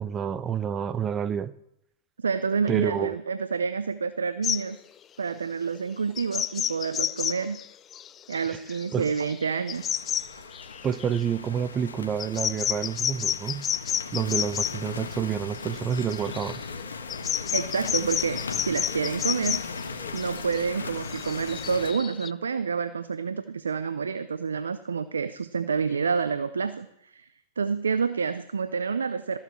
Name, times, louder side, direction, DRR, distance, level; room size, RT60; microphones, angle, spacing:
voice 1, 0.0-1.5 2.7-3.2 8.5-8.6 8.9-9.1 10.8-13.7 14.1-16.6, right 8 dB, 25° right, 0.6 m, -28 dB
voice 2, 2.2-4.8 5.2-7.6 8.3-9.9 17.5-27.3 27.6-29.4, right 5 dB, 85° right, 0.5 m, -28 dB
sound 1, 4.4-4.6 6.2-11.2 12.2-14.8 15.9-22.3, left 10 dB, 30° left, 0.4 m, -31 dB
sound 2, 9.7-21.9, left 4 dB, 85° left, 1.2 m, -38 dB
14.5 x 7.2 x 6.2 m
hypercardioid pair, 105°, 0 cm